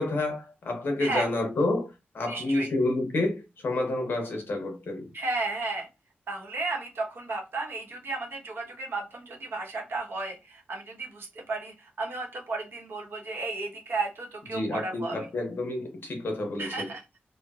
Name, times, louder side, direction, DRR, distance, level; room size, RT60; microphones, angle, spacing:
voice 1, 0.0-5.1 14.5-16.9, left 2 dB, 60° left, 0.8 m, -29 dB
voice 2, 2.3-2.7 5.1-5.9 6.3-15.3 16.6-17.0, right 3 dB, 70° right, 0.9 m, -33 dB
3.1 x 2.1 x 2.3 m
wide cardioid pair, 170°, 4 cm